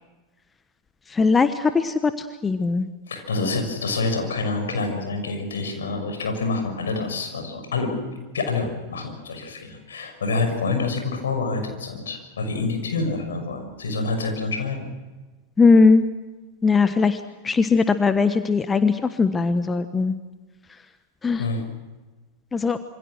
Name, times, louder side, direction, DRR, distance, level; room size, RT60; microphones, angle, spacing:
voice 1, 1.1-2.9 15.6-16.0 16.6-20.1 21.2-21.4 22.5-22.8, left 4 dB, 15° left, 11 dB, 1.2 m, -19 dB
voice 2, 3.1-14.9 21.3-21.6, left 3 dB, 65° left, 5 dB, 6.2 m, -27 dB
27.0 x 26.0 x 6.4 m, 1.2 s
figure-of-eight pair, 90°, 0 cm